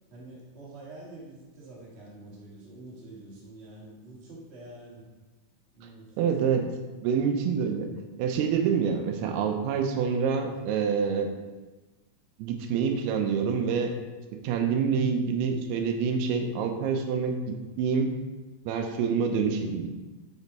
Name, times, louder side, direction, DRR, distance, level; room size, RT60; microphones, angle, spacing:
voice 1, 0.1-5.0 5.7-6.3 10.4-10.8, right 2 dB, 65° right, -6 dB, 0.6 m, -46 dB
voice 2, 6.2-6.6 7.0-7.9 8.2-11.3 12.4-14.0 14.4-17.4 17.8-18.1 18.7-19.9, right 6 dB, 85° right, 5 dB, 2.7 m, -26 dB
7.0 x 4.1 x 4.1 m, 1.2 s
omnidirectional pair, 4.5 m